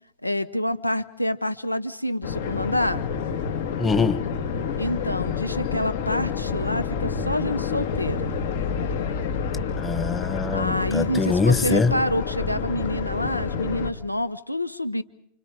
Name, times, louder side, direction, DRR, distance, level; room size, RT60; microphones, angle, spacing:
voice 1, 0.2-3.0 4.8-8.4 10.5-15.0, left 1 dB, 85° left, 16 dB, 0.9 m, -27 dB
sound 1, 2.2-13.9, left 6 dB, 60° left, 2.1 m, -28 dB
voice 2, 3.8-4.3 9.7-11.9, left 4 dB, 15° left, 11 dB, 1.6 m, -23 dB
29.5 x 26.5 x 5.1 m, 0.70 s
figure-of-eight pair, 90°, 0 cm